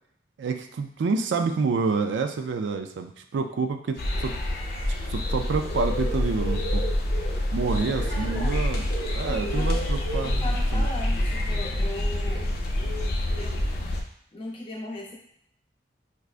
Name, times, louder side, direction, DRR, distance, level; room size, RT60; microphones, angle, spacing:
voice 1, 0.4-4.3 5.1-6.8 7.5-10.8, right 4 dB, 85° right, 6 dB, 0.3 m, -28 dB
sound 1, 4.0-14.0, left 1 dB, 60° left, 0.5 m, -27 dB
voice 2, 8.0-9.0 9.2-9.7 10.2-12.5 13.3-13.7 14.3-15.2, left 1 dB, 30° left, -3 dB, 0.8 m, -38 dB
4.7 x 2.2 x 2.4 m, 0.69 s
head